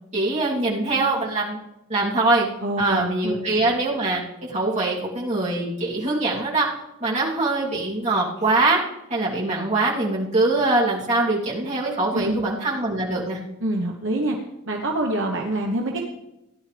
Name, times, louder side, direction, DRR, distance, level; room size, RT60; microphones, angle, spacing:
voice 1, 0.1-1.6 1.9-2.5 2.8-6.7 7.0-8.8 9.1-13.4, right 2 dB, 35° right, -6 dB, 2.8 m, -23 dB
voice 2, 2.6-3.4 12.1-12.4 13.6-14.4 14.7-16.0, right 1 dB, 60° right, 0 dB, 1.1 m, -25 dB
17.0 x 11.0 x 3.4 m, 0.92 s
head